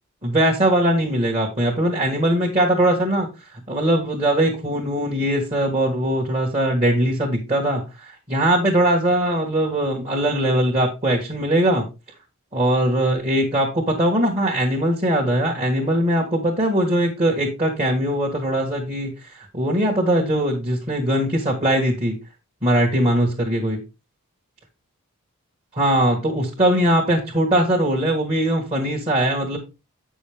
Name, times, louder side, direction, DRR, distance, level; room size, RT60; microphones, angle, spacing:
voice 1, 0.2-11.8 12.5-22.1 22.6-23.8 25.7-29.6, right 1 dB, 30° right, -1 dB, 1.5 m, -21 dB
8.2 x 6.3 x 3.5 m, 0.27 s
head